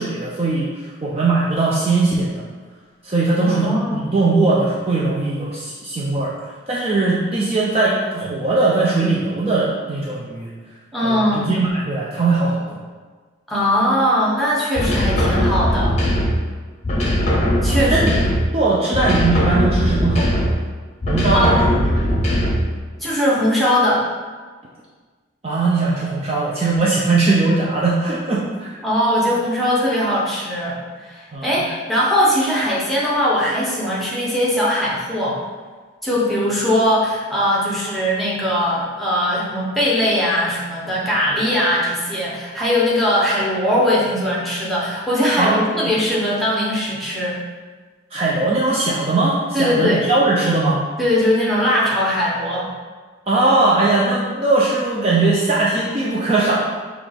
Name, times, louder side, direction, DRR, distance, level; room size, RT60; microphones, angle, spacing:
voice 1, 0.0-2.4 3.0-6.3 6.7-10.5 11.0-12.8 17.7-18.1 18.5-20.6 21.1-21.8 22.1-22.2 25.4-28.8 31.3-31.5 45.4-45.9 48.1-50.8 53.3-56.6, right 3 dB, 30° right, -5 dB, 0.4 m, -19 dB
voice 2, 3.4-4.0 10.9-11.5 13.5-16.0 17.6-18.1 21.3-21.7 23.0-24.1 28.8-35.4 36.0-47.4 49.5-50.0 51.0-52.7, equal, ahead, -7 dB, 0.8 m, -20 dB
sound 1, 14.8-16.5 16.8-18.6 18.9-20.6 21.0-22.7, equal, 35° left, 0.7 m, -19 dB
5.7 x 2.4 x 3.4 m, 1.5 s
head